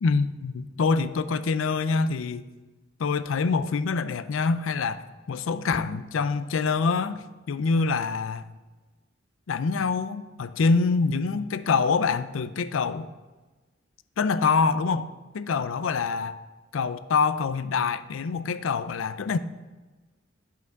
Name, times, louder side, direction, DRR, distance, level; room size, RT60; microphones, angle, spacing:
voice 1, 0.0-2.4 3.0-8.4 9.5-13.1 14.2-15.1 15.3-16.3 16.7-19.4, left 4 dB, 85° left, 0.4 m, -25 dB
10.5 x 5.8 x 4.6 m
head